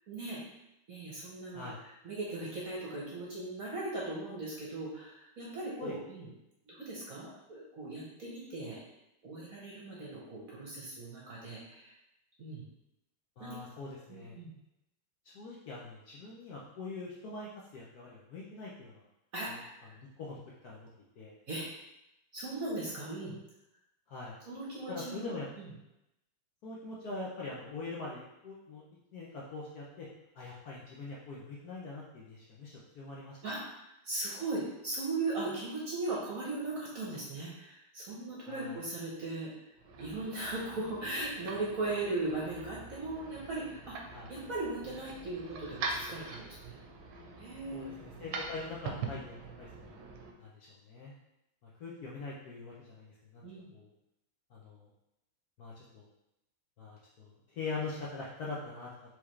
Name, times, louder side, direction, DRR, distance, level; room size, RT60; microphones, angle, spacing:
voice 1, 0.1-0.4 0.9-6.3 6.7-8.8 9.2-11.9 12.4-12.6 13.4-13.6 14.1-14.5 19.3-19.8 21.5-21.7 22.3-23.4 24.5-25.7 33.4-33.6 34.0-39.5 40.0-44.0 44.3-46.8 47.4-47.9 53.4-53.7, right 2 dB, 55° right, -5 dB, 1.1 m, -38 dB
voice 2, 13.4-14.3 15.3-19.0 19.5-19.6 19.9-20.9 21.2-21.3 24.1-24.4 24.9-25.5 26.6-28.8 29.1-30.1 30.3-33.4 38.4-38.8 44.1-44.3 47.7-50.0 50.4-51.1 51.6-53.9 54.5-54.9 55.6-56.0 56.8-58.9, left 3 dB, 70° left, -5 dB, 0.9 m, -43 dB
sound 1, 39.7-50.3, right 4 dB, 80° right, 1.4 m, -43 dB
4.7 x 3.5 x 3.1 m, 0.88 s
omnidirectional pair, 2.3 m